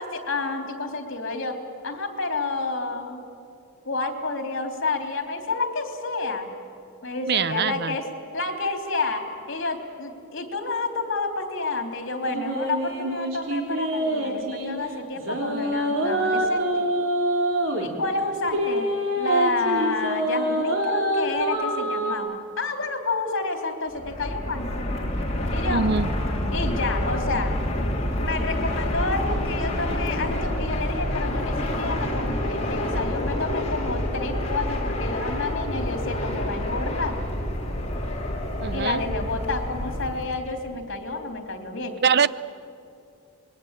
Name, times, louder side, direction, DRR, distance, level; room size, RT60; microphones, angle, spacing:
voice 1, 0.0-3.2 3.8-6.5 7.0-8.0 8.3-16.9 17.8-18.9 19.2-24.8 25.5-25.8 26.5-27.5 28.2-37.2 38.7-42.0, left 3 dB, 65° left, 5 dB, 3.3 m, -29 dB
voice 2, 7.3-7.9 25.7-26.1 38.6-39.0 42.0-42.3, right 6 dB, 55° right, 16 dB, 0.6 m, -23 dB
sound 1, 12.3-14.7 15.1-17.9 18.5-22.1, right 1 dB, 70° right, 3.5 m, -25 dB
Fixed-wing aircraft airplane, 23.9-40.3, left 1 dB, 35° left, 3.5 m, -28 dB
26.0 x 21.5 x 8.9 m, 2.5 s
head